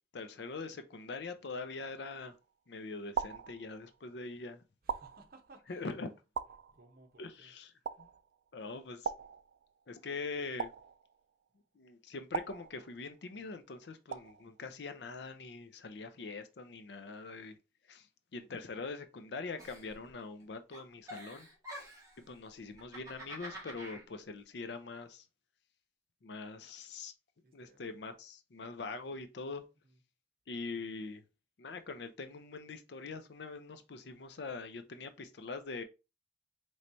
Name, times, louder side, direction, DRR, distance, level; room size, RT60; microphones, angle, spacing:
voice 1, 0.1-2.3 2.7-4.6 5.7-6.1 7.2-7.7 8.0-8.1 8.5-9.1 9.9-10.7 11.8-17.6 17.9-18.1 18.3-21.5 22.3-25.3 26.2-27.1 27.5-29.6 30.5-31.2 31.6-35.8, left 3 dB, 65° left, 0.5 m, -43 dB
sound 1, 2.0-2.5 3.1-4.1 4.9-5.7 6.3-7.2 7.8-8.5 9.0-10.0 10.6-11.5 12.3-13.3 14.1-14.7, right 7 dB, 75° right, 0.3 m, -41 dB
voice 2, 4.8-6.0 6.7-7.5 7.8-7.9 27.4-28.0 29.8-30.0, right 2 dB, 55° right, 0.9 m, -60 dB
Giggle, 19.6-20.4 20.7-22.2 22.7-24.0, right 1 dB, 20° right, 1.6 m, -47 dB
4.3 x 3.2 x 2.6 m
head